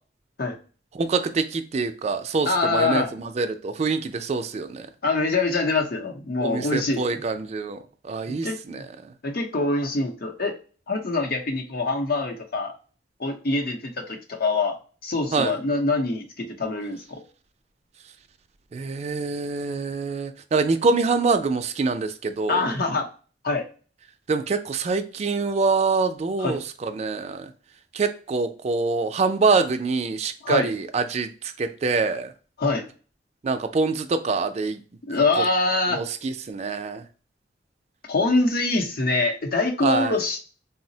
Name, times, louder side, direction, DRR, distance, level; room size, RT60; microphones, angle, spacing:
voice 1, 0.9-4.9 6.4-7.8 8.0-8.9 15.3-15.6 18.7-22.7 24.3-27.5 27.9-31.3 31.6-32.3 33.4-34.8 35.9-37.0 39.8-40.2, right 4 dB, 40° right, 0.3 m, -25 dB
voice 2, 2.5-3.1 5.0-7.2 8.3-8.8 9.2-10.5 10.9-12.7 13.2-17.2 22.5-23.1 23.4-23.7 26.4-26.6 30.4-30.7 32.6-32.9 35.0-36.0 38.1-40.4, left 3 dB, 60° left, 0.7 m, -24 dB
3.9 x 2.0 x 2.6 m
head